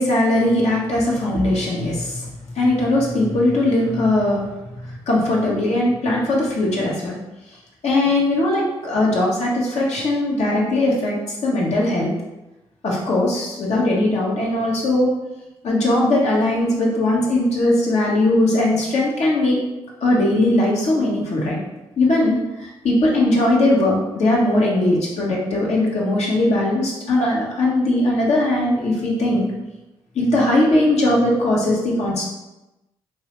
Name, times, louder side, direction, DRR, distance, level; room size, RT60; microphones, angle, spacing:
voice 1, 0.0-2.3 2.5-4.5 4.8-7.2 7.8-11.2 11.4-12.1 12.8-15.1 15.6-19.6 20.0-21.6 22.0-29.5 30.1-32.2, left 1 dB, 65° left, -3 dB, 1.0 m, -19 dB
3.2 x 2.6 x 3.0 m, 1.0 s
supercardioid pair, 50°, 12 cm